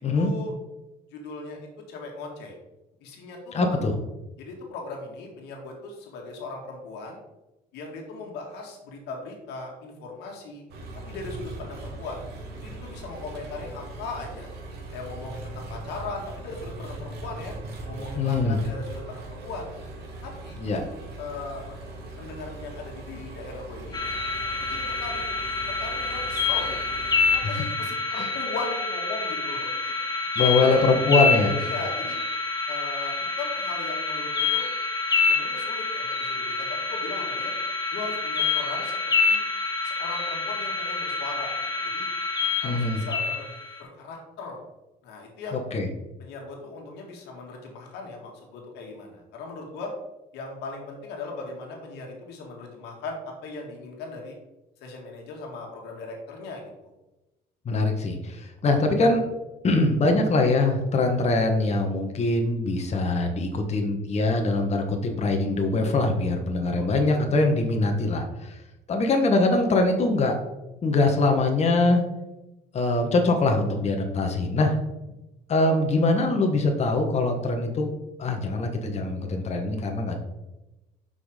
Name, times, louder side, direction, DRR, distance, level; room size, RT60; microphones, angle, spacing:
voice 1, 0.2-0.5 1.1-2.6 3.0-3.8 4.4-7.2 7.7-10.6 11.1-12.2 12.6-14.5 14.9-17.5 17.8-19.7 20.2-20.9 21.2-21.7 22.2-24.0 24.6-25.2 25.7-26.9 27.3-29.9 30.4-30.8 31.6-32.2 32.7-34.7 35.2-37.5 37.9-39.4 39.8-41.5 41.8-42.1 42.6-43.5 43.8-44.6 45.0-45.6 46.2-49.9 50.3-54.4 54.8-56.9 66.7-66.9, left 3 dB, 90° left, 0 dB, 1.8 m, -38 dB
voice 2, 3.5-3.9 18.2-18.6 20.6-20.8 28.2-28.3 30.4-31.5 42.6-43.0 45.5-45.9 57.6-59.2 59.6-68.6 68.9-70.3 70.8-72.0 72.7-74.8 75.5-77.9 78.2-80.2, left 2 dB, 40° left, 3 dB, 1.3 m, -23 dB
Engine, 10.7-27.4, right 2 dB, 75° right, 2.0 m, -40 dB
sound 1, 23.9-43.8, left 4 dB, 25° left, 1.2 m, -27 dB
6.0 x 5.5 x 5.0 m, 0.99 s
cardioid pair, 110°, 17 cm